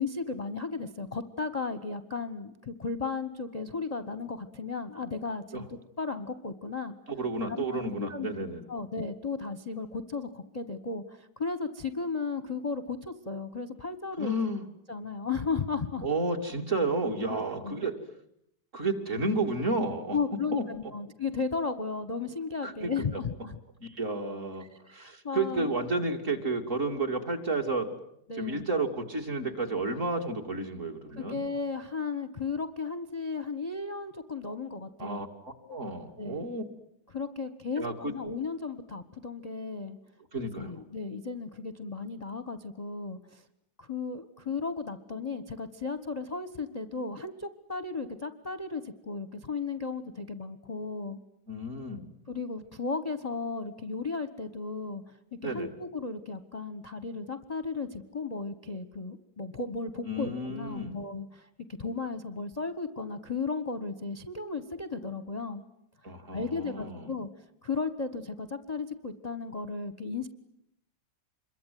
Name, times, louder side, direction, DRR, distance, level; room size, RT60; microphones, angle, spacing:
voice 1, 0.0-5.6 6.0-7.0 7.5-8.3 8.7-14.4 14.9-16.1 17.3-17.9 20.1-23.6 24.9-25.8 28.3-28.6 31.1-35.2 36.2-36.5 37.1-40.0 40.4-43.4 43.8-51.2 52.3-55.0 55.4-61.5 61.8-65.6 66.3-67.3 67.6-70.3, left 4 dB, 25° left, 11 dB, 1.1 m, -35 dB
voice 2, 7.1-8.7 14.2-14.6 16.0-18.0 18.7-20.2 20.5-20.6 22.6-23.2 23.8-24.7 24.9-28.0 28.4-31.4 35.0-36.6 37.8-38.1 40.3-40.8 51.5-52.1 55.4-55.7 60.0-61.0 66.0-67.1, right 2 dB, 40° right, 3 dB, 3.1 m, -31 dB
27.0 x 23.0 x 9.4 m, 0.74 s
omnidirectional pair, 2.1 m